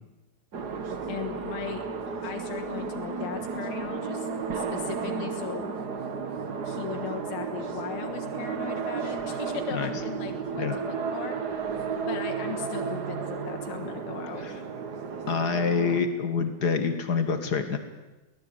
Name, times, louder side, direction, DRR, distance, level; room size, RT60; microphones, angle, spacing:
sound 1, 0.5-16.0, right 5 dB, 80° right, 0.9 m, -33 dB
voice 1, 1.1-1.8 2.2-4.3 4.5-5.7 6.6-11.4 12.1-14.7, left 8 dB, 75° left, 4 dB, 3.3 m, -38 dB
voice 2, 15.3-17.8, left 5 dB, 50° left, 8 dB, 1.2 m, -26 dB
23.5 x 17.5 x 9.0 m, 1.1 s
omnidirectional pair, 4.3 m